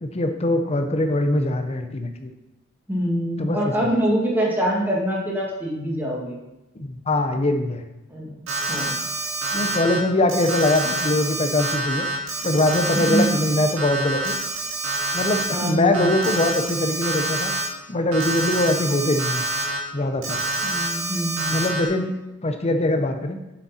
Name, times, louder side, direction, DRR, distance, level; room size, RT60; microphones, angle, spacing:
voice 1, 0.0-2.3 3.4-3.7 6.8-7.8 9.5-12.1 12.4-14.4 15.1-17.5 17.9-19.4 19.9-20.4 21.5-22.1 22.4-23.4, left 1 dB, 30° left, 7 dB, 0.7 m, -22 dB
voice 2, 2.9-6.4 8.1-8.3 8.7-8.9 12.9-13.3 15.5-16.1 20.6-21.8, equal, 10° right, -4 dB, 1.8 m, -24 dB
Alarm, 8.5-10.0 10.3-15.7 15.9-17.7 18.1-19.8 20.2-21.9, right 2 dB, 80° right, 1.8 m, -27 dB
7.4 x 6.7 x 4.2 m, 0.97 s
head